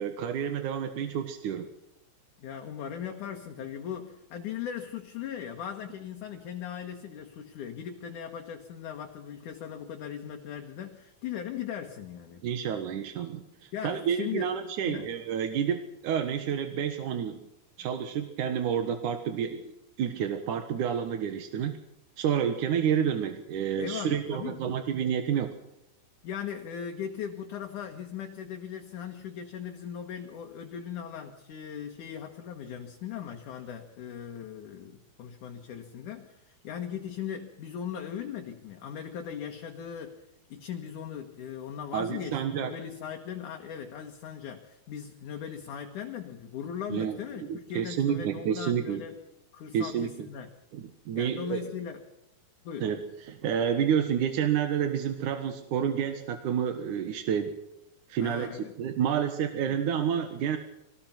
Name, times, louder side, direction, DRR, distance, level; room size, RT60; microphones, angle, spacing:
voice 1, 0.0-1.7 12.4-17.4 17.8-21.8 22.2-25.5 41.9-42.7 46.9-49.0 49.7-50.3 50.7-51.7 52.8-57.6 58.1-60.6, right 8 dB, 65° right, 7 dB, 2.3 m, -29 dB
voice 2, 2.4-12.4 13.7-14.6 14.9-15.1 23.8-24.8 26.2-40.2 40.5-49.1 49.5-50.5 51.1-52.0 52.6-52.9 58.2-58.7 59.7-59.8, left 8 dB, 60° left, 4 dB, 2.5 m, -39 dB
24.0 x 18.5 x 6.0 m, 0.88 s
omnidirectional pair, 4.8 m